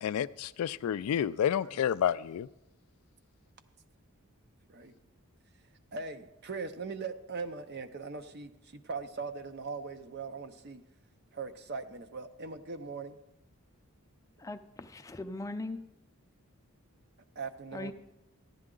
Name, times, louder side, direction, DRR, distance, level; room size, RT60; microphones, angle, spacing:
voice 1, 0.0-2.5, left 9 dB, 80° left, 16 dB, 0.3 m, -30 dB
voice 2, 5.9-10.8 11.3-13.2 17.4-17.9, right 4 dB, 45° right, 9 dB, 0.6 m, -40 dB
voice 3, 14.4-15.8 17.7-17.9, left 2 dB, 15° left, 8 dB, 0.5 m, -39 dB
14.0 x 10.5 x 3.8 m, 0.91 s
head